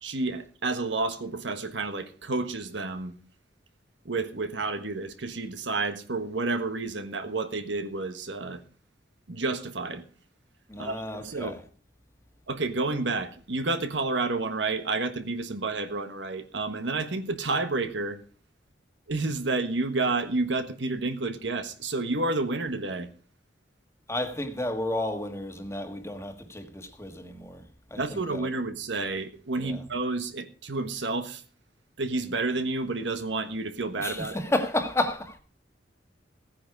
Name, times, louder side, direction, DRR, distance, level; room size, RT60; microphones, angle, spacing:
voice 1, 0.0-3.1 4.0-8.6 9.3-10.0 10.8-11.6 12.5-18.2 19.1-23.1 28.0-31.4 32.0-34.4, right 3 dB, 75° right, 1.4 m, -30 dB
voice 2, 10.7-11.6 24.1-27.6 27.9-28.5 29.6-29.8 34.0-35.4, left 1 dB, 15° left, 1.6 m, -32 dB
15.5 x 9.8 x 4.7 m
head